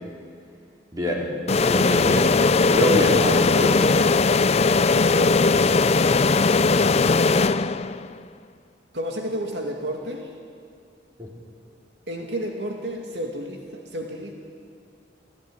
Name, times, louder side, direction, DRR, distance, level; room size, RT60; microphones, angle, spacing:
voice 1, 0.9-1.3 1.6-2.3 2.6-3.9 11.2-11.3, left 1 dB, 20° right, -2 dB, 4.8 m, -24 dB
sound 1, 1.5-8.1, left 3 dB, 35° left, 0.5 m, -19 dB
voice 2, 5.0-5.5 8.9-10.3 12.1-14.3, equal, 70° right, 1 dB, 2.5 m, -31 dB
28.0 x 17.0 x 9.9 m, 2.3 s
head